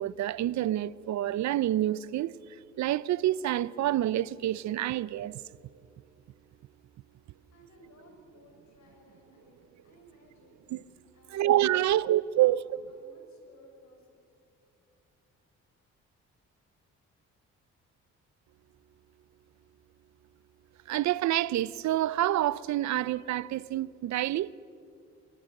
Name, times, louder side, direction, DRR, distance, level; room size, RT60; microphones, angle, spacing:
voice 1, 0.0-2.3 2.8-5.4 10.7-10.8 11.3-12.6 20.9-24.5, right 13 dB, 65° right, 0.6 m, -27 dB
voice 2, 7.5-10.6 11.1-14.2, left 1 dB, 65° left, 7.1 m, -59 dB
23.5 x 23.5 x 6.5 m
cardioid pair, 90°, 30 cm